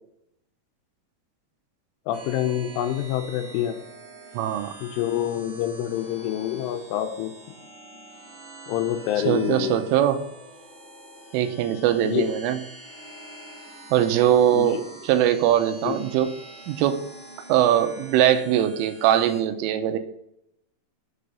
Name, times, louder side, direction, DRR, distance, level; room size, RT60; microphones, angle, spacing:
voice 1, 2.1-3.8 4.8-7.3 8.7-9.8 12.0-12.3 14.5-14.7 15.8-16.0, left 11 dB, 80° left, 8 dB, 3.2 m, -26 dB
sound 1, 2.1-19.4, right 1 dB, 25° right, 1.9 m, -45 dB
voice 2, 4.3-4.7 9.3-10.2 11.3-12.6 13.9-14.8 15.0-16.4 16.7-17.1 17.5-20.0, right 11 dB, 85° right, 8 dB, 3.2 m, -21 dB
7.6 x 6.7 x 5.5 m, 0.78 s
omnidirectional pair, 5.7 m